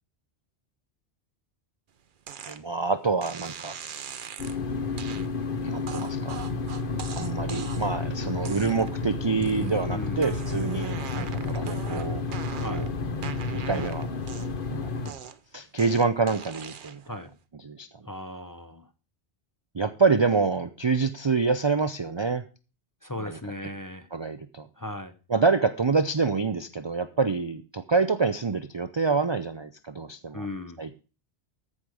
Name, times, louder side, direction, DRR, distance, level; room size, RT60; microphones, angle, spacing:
sound 1, 2.3-2.6 3.2-4.6 5.0-5.3 5.9-8.0 8.4-9.0 9.4-9.8 10.2-12.9 13.2-14.7 15.1-17.1, right 7 dB, 55° right, 0.8 m, -41 dB
voice 1, 2.4-3.8 5.6-6.4 7.2-12.3 12.7-12.9 13.5-14.1 14.7-14.9 15.5-17.0 17.6-18.0 19.7-22.4 23.2-23.4 24.1-24.7 25.3-30.5 30.8-31.0, right 4 dB, 35° right, 11 dB, 0.4 m, -26 dB
sound 2, 4.4-15.1, left 3 dB, 50° left, 1.2 m, -31 dB
voice 2, 9.9-10.3 12.6-12.9 17.1-17.3 18.0-18.9 23.0-24.1 24.8-25.2 30.3-30.8, left 1 dB, 20° left, 7 dB, 0.6 m, -37 dB
14.0 x 5.1 x 6.2 m, 0.35 s
omnidirectional pair, 1.1 m